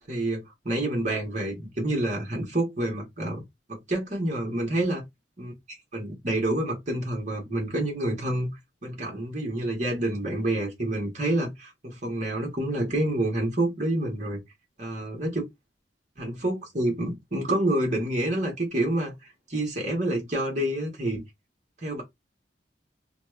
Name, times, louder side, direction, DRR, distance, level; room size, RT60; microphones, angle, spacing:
voice 1, 0.1-3.4 3.7-5.0 5.4-8.5 8.8-14.4 14.8-15.4 16.2-21.2 21.8-22.0, right 1 dB, 45° right, 1.4 m, -28 dB
3.2 x 2.3 x 3.2 m
head